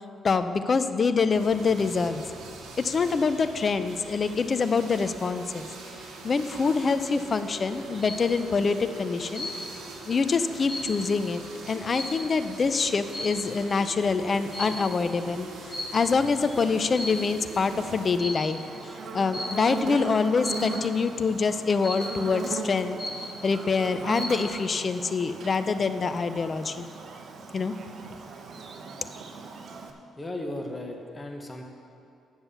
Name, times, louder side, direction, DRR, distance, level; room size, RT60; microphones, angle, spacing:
voice 1, 0.2-2.2 2.8-5.7 6.2-9.5 10.0-11.4 11.7-18.6 19.1-23.0 23.4-26.9 27.5-27.7, left 4 dB, 40° left, 10 dB, 0.5 m, -25 dB
sound 1, 1.3-18.2, right 3 dB, 75° right, 1.5 m, -43 dB
sound 2, 7.7-8.3 9.3-9.9 10.3-12.5 13.1-13.5 14.5-14.9 15.7-16.3 16.8-17.5 18.2-18.6 19.3-19.7 20.4-20.9 21.8-22.3 22.7-22.8 23.0-23.6 24.0-24.5, left 1 dB, 5° left, 2.5 m, -36 dB
Buzz, 17.6-29.9, right 4 dB, 60° right, 0.9 m, -38 dB
voice 2, 30.2-31.6, left 1 dB, 20° left, 3 dB, 1.2 m, -36 dB
8.9 x 7.1 x 7.0 m, 2.4 s
cardioid pair, 90°, 0 cm